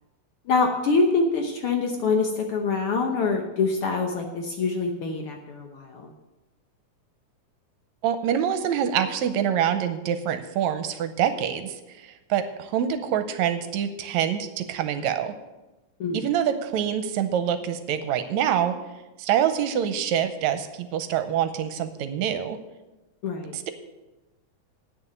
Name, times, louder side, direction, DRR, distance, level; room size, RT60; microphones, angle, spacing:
voice 1, 0.5-6.1 16.0-16.2 23.2-23.5, left 4 dB, 65° left, 3 dB, 1.5 m, -25 dB
voice 2, 8.0-15.3 16.1-18.8 19.2-22.6 23.5-23.7, right 9 dB, 75° right, 9 dB, 2.0 m, -26 dB
8.9 x 6.9 x 8.8 m, 1.1 s
omnidirectional pair, 3.4 m